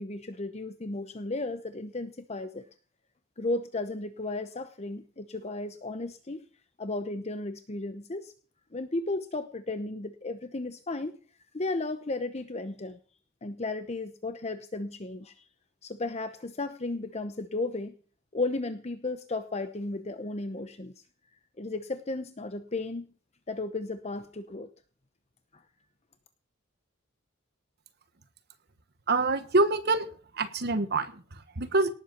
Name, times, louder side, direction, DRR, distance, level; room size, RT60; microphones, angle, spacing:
voice 1, 0.0-2.6 3.4-6.5 6.8-8.3 8.7-11.2 11.5-13.0 13.4-15.5 15.8-17.9 18.3-20.9 21.6-23.1 23.5-24.7 25.5-25.6, left 2 dB, 30° left, 10 dB, 0.9 m, -34 dB
voice 2, 29.1-30.1 30.3-31.9, right 2 dB, 50° right, 11 dB, 1.3 m, -26 dB
18.0 x 8.1 x 6.0 m, 0.40 s
head